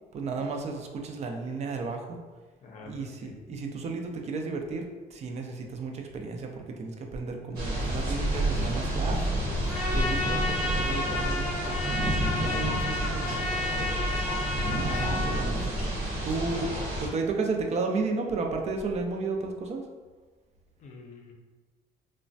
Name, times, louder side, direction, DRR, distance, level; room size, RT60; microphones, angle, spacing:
voice 1, 0.1-2.2 2.9-4.8 5.1-9.2 9.9-12.2 12.4-13.7 14.7-15.7 16.2-16.7 17.0-19.9, right 4 dB, 40° right, 2 dB, 0.4 m, -33 dB
voice 2, 2.6-3.3 13.4-13.9 20.8-21.3, left 4 dB, 45° left, 1 dB, 0.6 m, -46 dB
sound 1, 7.6-17.1, right 1 dB, 60° right, 1.1 m, -29 dB
Trumpet, 9.7-15.5, left 2 dB, 5° right, 0.7 m, -32 dB
3.0 x 2.1 x 2.6 m, 1.3 s
cardioid pair, 110°, 17 cm